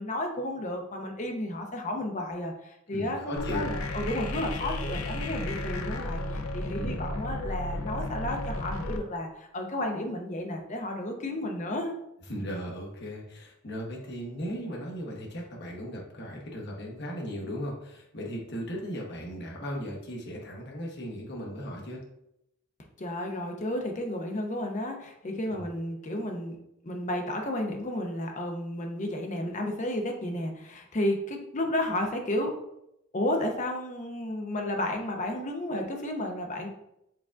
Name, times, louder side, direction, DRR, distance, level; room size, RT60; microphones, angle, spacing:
voice 1, 0.0-11.9 23.0-26.6 26.8-32.5 33.1-36.7, left 1 dB, 35° left, 3 dB, 0.6 m, -32 dB
voice 2, 2.9-3.8 5.1-5.3 6.7-7.1 12.3-22.0 25.5-25.7, equal, 50° left, -2 dB, 0.9 m, -37 dB
sound 1, 3.4-9.0, left 1 dB, 80° left, 0.5 m, -33 dB
4.7 x 3.5 x 2.4 m, 0.82 s
head